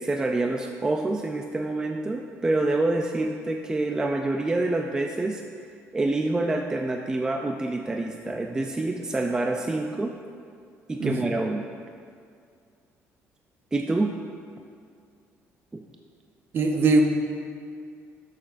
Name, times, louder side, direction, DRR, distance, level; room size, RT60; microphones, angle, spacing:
voice 1, 0.0-5.4 5.9-10.2 10.9-11.6 13.7-14.2 15.7-15.9, right 2 dB, 15° right, 3 dB, 0.3 m, -27 dB
voice 2, 16.5-17.0, right 3 dB, 45° right, 3 dB, 0.8 m, -20 dB
12.5 x 6.5 x 2.5 m, 2.2 s
cardioid pair, 145°, 5 cm